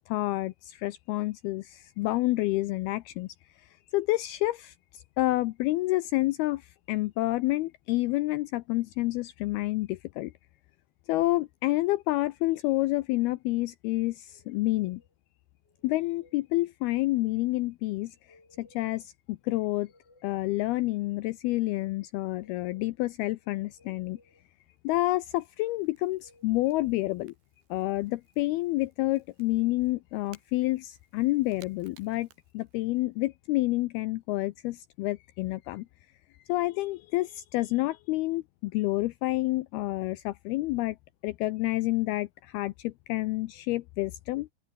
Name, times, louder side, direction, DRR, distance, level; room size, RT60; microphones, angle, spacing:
voice 1, 0.1-3.3 3.9-10.3 11.1-15.0 15.8-18.2 18.6-19.9 20.2-24.2 24.8-27.3 27.7-32.3 32.5-35.9 36.5-41.0 41.2-44.5, left 19 dB, 80° left, 2.3 m, -29 dB
sound 1, 14.3-15.1 15.6-16.5 18.1-19.1 19.4-20.5 21.9-23.0 23.4-24.4 26.0-27.0, left 2 dB, 25° left, 7.7 m, -61 dB
Crackle / Crack, 23.7-33.2, right 7 dB, 70° right, 6.5 m, -63 dB
open air
omnidirectional pair, 5.0 m